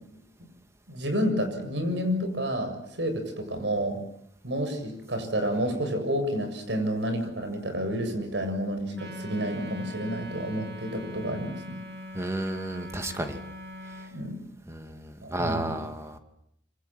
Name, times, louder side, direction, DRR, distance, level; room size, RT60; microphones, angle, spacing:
voice 1, 0.9-4.0 4.4-11.8 14.1-14.4 15.2-15.8, equal, 85° right, 7 dB, 7.4 m, -30 dB
Wind instrument woodwind instrument, 8.9-14.2, equal, 60° right, 2.6 m, -41 dB
voice 2, 12.1-13.4 14.7-16.2, right 1 dB, 15° right, 6 dB, 2.6 m, -32 dB
26.5 x 26.0 x 7.6 m, 0.73 s
head